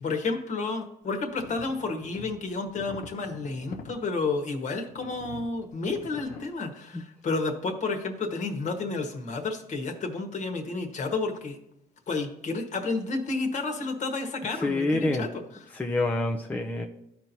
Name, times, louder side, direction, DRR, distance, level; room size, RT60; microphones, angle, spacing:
voice 1, 0.0-11.6 12.1-15.4, left 3 dB, 45° left, 4 dB, 1.4 m, -31 dB
sound 1, 1.3-4.0 4.9-6.5, left 4 dB, 60° left, 0.9 m, -44 dB
voice 2, 14.5-15.3 15.7-16.8, left 2 dB, 10° left, 1 dB, 0.6 m, -27 dB
13.0 x 4.5 x 2.7 m, 0.83 s
cardioid pair, 110°, 17 cm